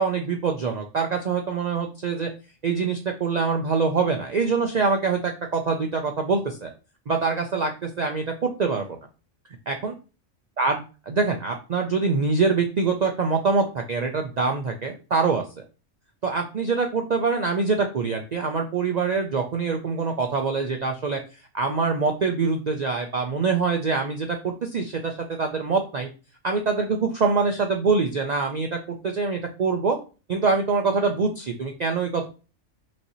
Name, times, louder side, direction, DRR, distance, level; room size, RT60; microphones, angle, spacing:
voice 1, 0.0-2.3 2.6-6.7 7.1-8.9 9.7-9.9 10.6-10.8 11.1-15.6 16.2-21.2 21.5-26.1 26.4-28.8 29.0-30.0 30.3-32.3, right 4 dB, 90° right, 3 dB, 0.3 m, -24 dB
6.0 x 2.7 x 2.9 m, 0.33 s
omnidirectional pair, 1.4 m